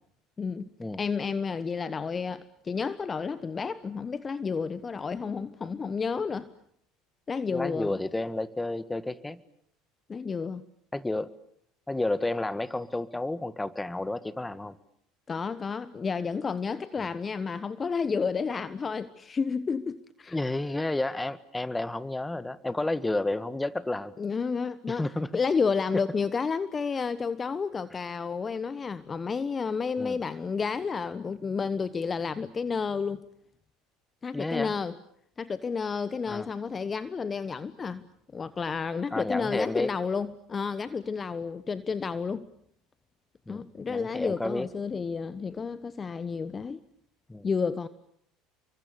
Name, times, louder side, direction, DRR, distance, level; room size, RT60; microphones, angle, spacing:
voice 1, 1.0-6.5 7.3-8.0 10.1-10.6 15.3-20.4 24.2-25.1 25.3-33.2 34.2-35.0 35.4-38.0 38.3-42.5 43.5-46.8 47.4-47.9, left 5 dB, 30° left, 14 dB, 1.1 m, -31 dB
voice 2, 7.5-9.4 10.9-11.3 11.9-14.7 17.0-17.1 20.3-24.1 24.9-25.3 30.0-30.2 34.3-34.7 36.3-36.5 39.1-39.9 43.5-44.7 47.3-47.5, left 2 dB, 10° left, 15 dB, 1.7 m, -31 dB
30.0 x 24.5 x 7.0 m, 0.68 s
hypercardioid pair, 80°, 0 cm